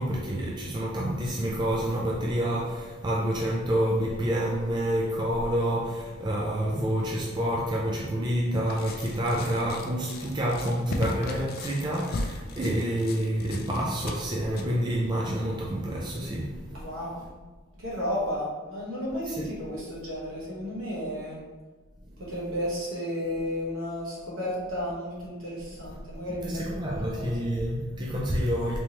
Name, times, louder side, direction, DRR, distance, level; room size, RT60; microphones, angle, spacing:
voice 1, 0.0-17.0 19.3-19.5 22.2-22.3 25.9-26.0 26.4-28.8, right 1 dB, 20° right, -3 dB, 0.4 m, -28 dB
sound 1, 8.7-14.6, left 2 dB, 45° left, 0.4 m, -37 dB
voice 2, 16.7-17.2 17.8-21.4 22.2-27.3, equal, 70° right, -6 dB, 1.3 m, -33 dB
3.4 x 2.9 x 2.9 m, 1.3 s
head